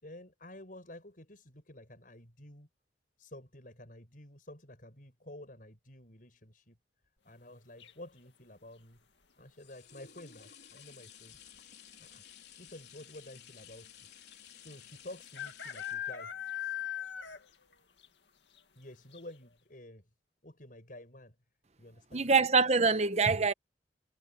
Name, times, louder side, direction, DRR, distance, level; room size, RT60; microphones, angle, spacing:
voice 1, 0.0-2.7 3.2-6.8 7.2-9.0 9.4-11.4 12.0-12.2 12.6-14.0 14.6-16.3 18.7-20.1 20.4-21.3 21.8-22.3, left 1 dB, 50° left, 6.7 m, -51 dB
sound 1, 7.8-8.3 10.1-10.5 10.7-10.8 11.1-11.6 12.4-12.5 12.7-12.8 14.3-14.4 15.3-17.6 18.0-18.1 18.6-18.7 19.1-19.2, left 10 dB, 85° left, 2.1 m, -39 dB
sound 2, 8.9-18.3 18.8-18.9, left 9 dB, 70° left, 4.0 m, -55 dB
voice 2, 22.1-23.5, right 4 dB, 40° right, 1.0 m, -25 dB
head